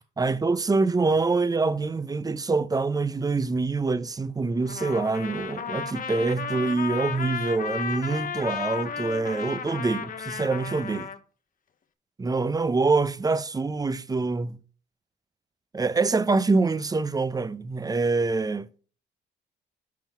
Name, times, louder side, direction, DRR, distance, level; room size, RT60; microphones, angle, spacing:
voice 1, 0.2-11.1 12.2-14.6 15.7-18.7, right 3 dB, 20° right, 0.5 m, -25 dB
Trumpet, 4.6-11.2, left 6 dB, 45° left, 0.9 m, -33 dB
9.3 x 3.8 x 6.0 m
cardioid pair, 90°, 20 cm